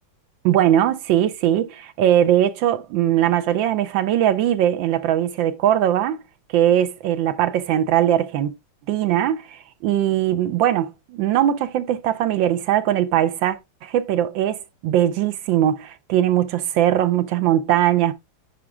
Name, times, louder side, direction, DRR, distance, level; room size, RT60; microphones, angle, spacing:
voice 1, 0.4-6.2 6.5-8.5 8.9-18.1, right 11 dB, 85° right, 1.4 m, -20 dB
14.5 x 5.1 x 2.3 m
omnidirectional pair, 2.1 m